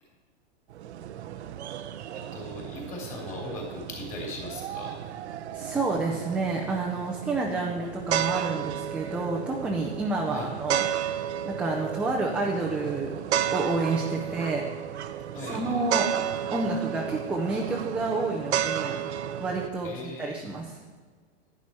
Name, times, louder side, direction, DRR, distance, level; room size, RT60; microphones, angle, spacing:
sound 1, 0.7-19.7, right 10 dB, 80° right, 0.8 m, -33 dB
voice 1, 2.1-5.0 10.3-10.5 15.3-15.8 19.8-20.4, left 2 dB, 25° left, -1 dB, 3.0 m, -39 dB
voice 2, 5.5-13.1 13.5-14.6 15.5-16.1 16.5-19.0 19.4-20.8, right 3 dB, 5° right, -2 dB, 0.5 m, -29 dB
11.0 x 11.0 x 4.3 m, 1.5 s
supercardioid pair, 155°, 33 cm